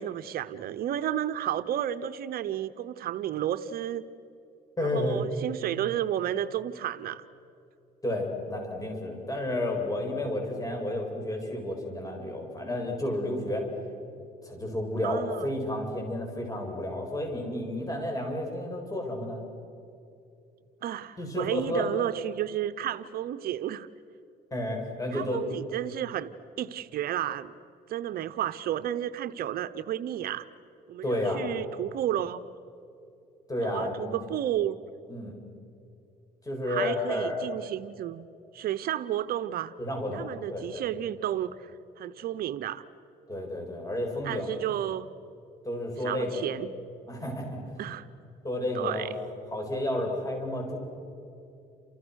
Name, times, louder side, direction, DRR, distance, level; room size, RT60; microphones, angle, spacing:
voice 1, 0.0-4.1 4.8-7.2 15.0-15.5 20.8-23.9 25.1-27.5 27.9-30.4 30.9-32.4 33.6-34.8 36.7-38.2 38.5-39.7 40.1-41.7 42.0-42.8 44.2-45.1 46.0-46.7 47.8-48.1 48.7-49.1, right 11 dB, 65° right, 12 dB, 0.9 m, -32 dB
voice 2, 4.8-5.2 8.0-13.7 14.4-19.4 21.2-21.9 24.5-25.4 31.0-31.5 33.5-34.3 35.1-35.3 36.4-37.4 39.8-40.2 40.5-40.9 43.3-44.6 45.6-46.5 47.1-47.6 48.4-49.1 49.5-50.8, left 1 dB, 20° left, 2 dB, 7.9 m, -31 dB
30.0 x 28.5 x 6.5 m, 2.7 s
cardioid pair, 110°, 17 cm